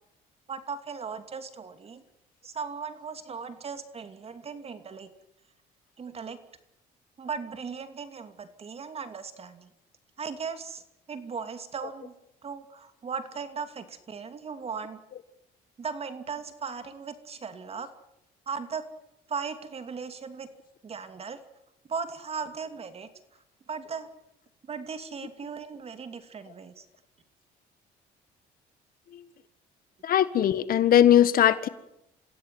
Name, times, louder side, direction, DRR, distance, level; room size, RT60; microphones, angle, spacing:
voice 1, 0.5-2.0 2.4-5.1 6.0-6.4 7.2-9.7 10.2-10.8 11.1-12.1 12.4-15.0 15.8-17.9 18.5-18.8 19.3-20.5 20.8-21.4 21.9-23.1 23.7-24.1 24.7-26.9, right 5 dB, 35° right, 10 dB, 2.7 m, -37 dB
voice 2, 30.0-31.7, left 11 dB, 60° left, 14 dB, 1.6 m, -20 dB
27.5 x 16.0 x 9.7 m, 0.85 s
cardioid pair, 110°, 17 cm